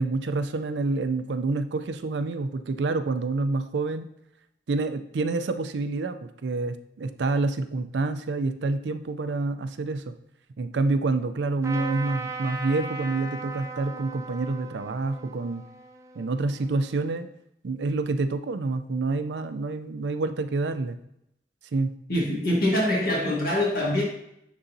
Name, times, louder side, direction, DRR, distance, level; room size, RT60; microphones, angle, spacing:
voice 1, 0.0-4.1 4.7-6.2 6.4-10.1 10.6-15.6 16.2-17.3 17.6-21.0 21.7-21.9, right 3 dB, 90° right, 10 dB, 0.5 m, -27 dB
Trumpet, 11.6-17.1, right 3 dB, 15° right, 0.3 m, -38 dB
voice 2, 22.1-24.0, left 1 dB, 55° left, -3 dB, 1.5 m, -24 dB
9.7 x 4.0 x 2.7 m, 0.78 s
head